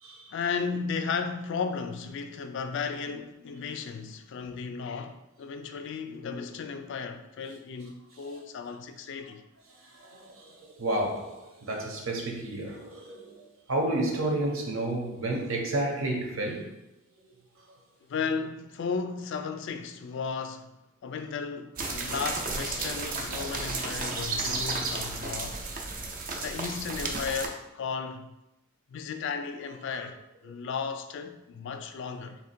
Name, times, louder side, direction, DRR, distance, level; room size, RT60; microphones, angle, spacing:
voice 1, 0.3-9.4 18.1-20.7 21.0-25.6 26.4-28.3 28.9-30.2 30.4-32.4, left 5 dB, 55° left, 0.3 m, -34 dB
voice 2, 9.9-16.7, right 1 dB, 70° right, 0.9 m, -31 dB
sound 1, 21.8-27.5, right 3 dB, 40° right, 0.5 m, -33 dB
3.6 x 2.8 x 4.3 m
head